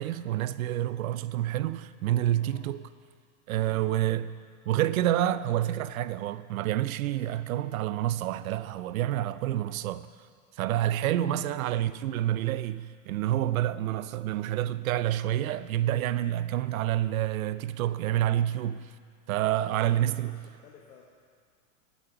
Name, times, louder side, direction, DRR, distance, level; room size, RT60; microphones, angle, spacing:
voice 1, 0.0-2.8 3.5-4.3 4.7-10.1 10.6-18.9 19.3-20.3, right 13 dB, 75° right, 0.6 m, -28 dB
voice 2, 2.3-2.6 3.6-4.1 11.0-11.1 11.6-11.8 19.4-21.0, left 7 dB, 80° left, 1.5 m, -52 dB
11.5 x 9.0 x 5.9 m
supercardioid pair, 165°, 42 cm